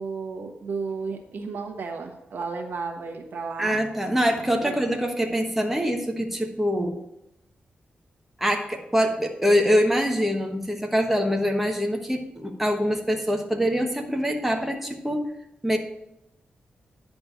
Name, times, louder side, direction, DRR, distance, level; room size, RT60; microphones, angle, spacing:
voice 1, 0.0-3.8 4.6-4.8, right 4 dB, 75° right, 4 dB, 1.2 m, -33 dB
voice 2, 3.6-7.0 8.4-15.3 15.6-15.8, equal, 5° right, 2 dB, 1.2 m, -24 dB
10.5 x 3.4 x 6.9 m, 0.85 s
wide cardioid pair, 100°, 3 cm